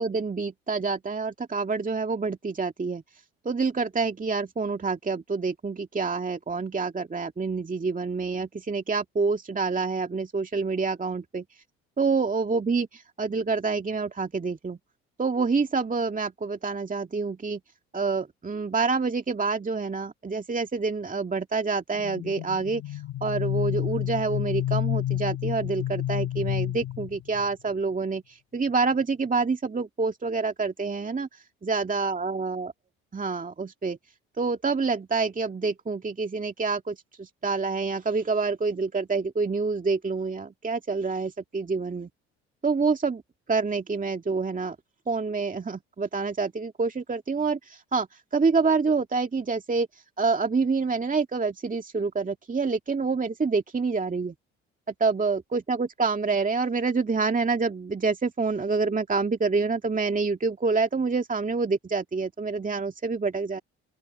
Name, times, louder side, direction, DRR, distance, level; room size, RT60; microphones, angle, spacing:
voice 1, 0.0-3.0 3.4-11.4 12.0-14.8 15.2-17.6 17.9-31.3 31.6-32.7 33.1-34.0 34.4-42.1 42.6-43.2 43.5-44.8 45.1-48.1 48.3-49.9 50.2-54.3 55.0-63.6, right 4 dB, 25° right, 2.2 m, -27 dB
sound 1, 22.0-27.5, left 13 dB, 60° left, 1.9 m, -30 dB
open air
hypercardioid pair, 55°, 32 cm